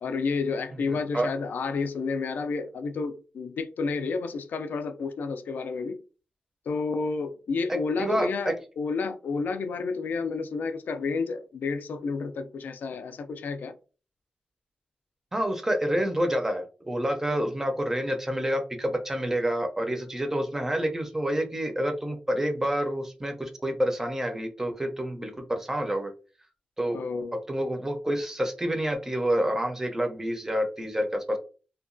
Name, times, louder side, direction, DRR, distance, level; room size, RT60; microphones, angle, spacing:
voice 1, 0.0-6.0 6.7-13.7 26.9-27.4, left 4 dB, 75° left, 0.3 m, -30 dB
voice 2, 0.9-1.3 7.7-8.5 15.3-26.1 26.8-27.0 27.5-31.4, equal, 15° right, 0.5 m, -28 dB
2.8 x 2.2 x 2.5 m
wide cardioid pair, 160°, 3 cm